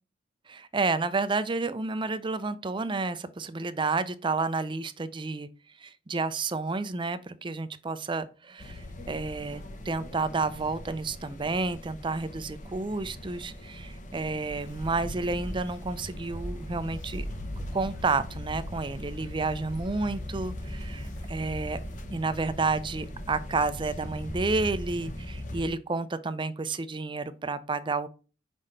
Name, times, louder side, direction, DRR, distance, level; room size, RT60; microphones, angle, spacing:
voice 1, 0.5-5.5 5.8-17.3 17.6-21.8 22.1-28.1, right 3 dB, 25° right, 0.5 m, -30 dB
sound 1, 8.6-25.7, left 1 dB, 45° left, 1.0 m, -40 dB
sound 2, 14.4-22.1, equal, 25° left, 1.8 m, -42 dB
5.7 x 5.1 x 3.2 m
head